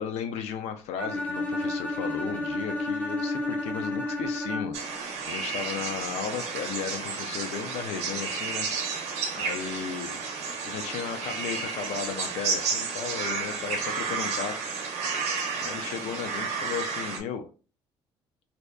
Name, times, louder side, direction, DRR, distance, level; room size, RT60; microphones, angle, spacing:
voice 1, 0.0-4.8 5.3-8.7 9.4-10.2 10.6-14.6 15.6-17.5, left 7 dB, 75° left, 7 dB, 0.4 m, -35 dB
Bowed string instrument, 1.0-5.0, left 2 dB, 15° left, 0.7 m, -31 dB
sound 1, 4.7-17.2, right 5 dB, 80° right, 0.6 m, -32 dB
2.6 x 2.1 x 2.3 m, 0.36 s
cardioid pair, 120°, 11 cm